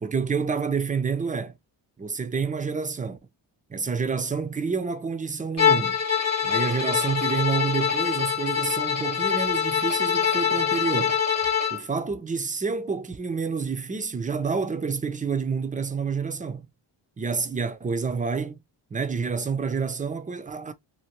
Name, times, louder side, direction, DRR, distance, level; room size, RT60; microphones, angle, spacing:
voice 1, 0.0-1.5 2.0-3.2 3.7-6.0 6.4-11.2 11.7-16.7 17.2-18.6 18.9-20.7, right 5 dB, 20° right, 0.5 m, -28 dB
Bowed string instrument, 5.6-11.8, left 7 dB, 35° left, 1.0 m, -24 dB
2.9 x 2.5 x 3.0 m
cardioid pair, 105°, 43 cm